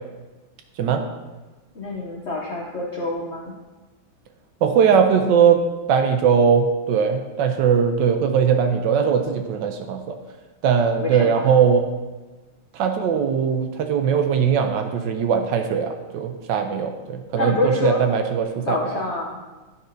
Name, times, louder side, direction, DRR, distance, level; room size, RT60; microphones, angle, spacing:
voice 1, 1.7-3.6 11.0-11.6 17.3-18.0 18.6-19.4, left 2 dB, 65° left, -1 dB, 0.6 m, -26 dB
voice 2, 4.6-5.6 5.9-10.2 10.6-11.8 12.7-18.8, right 7 dB, 75° right, 5 dB, 1.2 m, -20 dB
10.5 x 5.5 x 2.6 m, 1.2 s
omnidirectional pair, 2.2 m